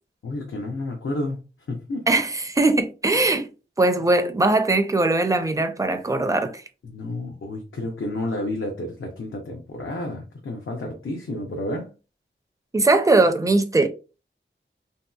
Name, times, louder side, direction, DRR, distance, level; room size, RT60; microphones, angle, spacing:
voice 1, 0.2-1.4 1.7-2.1 6.8-11.9, left 1 dB, 80° left, 0.6 m, -30 dB
voice 2, 2.1-3.5 3.8-6.6 12.7-13.9, right 2 dB, 15° right, 0.4 m, -20 dB
2.9 x 2.7 x 2.3 m
wide cardioid pair, 60°, 21 cm